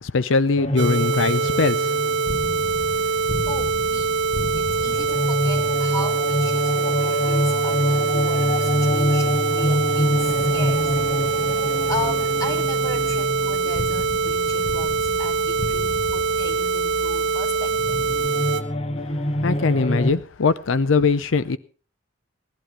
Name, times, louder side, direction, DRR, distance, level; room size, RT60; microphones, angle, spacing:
voice 1, 0.0-1.9 19.4-21.6, left 4 dB, 90° left, 0.6 m, -21 dB
sound 1, 0.6-20.1, left 1 dB, 35° left, 1.0 m, -26 dB
sound 2, 0.8-18.6, right 5 dB, 65° right, 1.1 m, -23 dB
voice 2, 3.5-18.0, left 1 dB, 20° left, 2.1 m, -36 dB
sound 3, 10.2-18.3, right 1 dB, ahead, 1.3 m, -42 dB
17.5 x 11.5 x 4.6 m
head